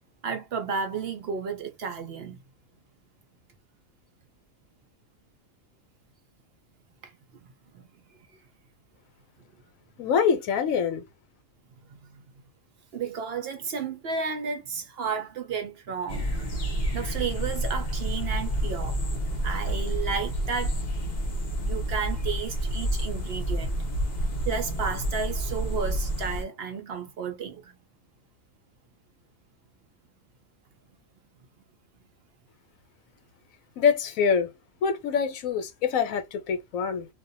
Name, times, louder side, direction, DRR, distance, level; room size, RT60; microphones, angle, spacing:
voice 1, 0.2-2.4 7.0-7.9 11.9-12.2 12.9-16.5 16.9-19.0 19.4-20.8 21.6-23.8 24.4-27.8, right 6 dB, 65° right, 0.6 m, -33 dB
voice 2, 10.0-11.1 33.8-34.5 34.8-37.1, left 6 dB, 80° left, 1.1 m, -25 dB
sound 1, 16.1-26.4, right 1 dB, 50° left, 0.6 m, -29 dB
2.4 x 2.2 x 2.5 m
omnidirectional pair, 1.5 m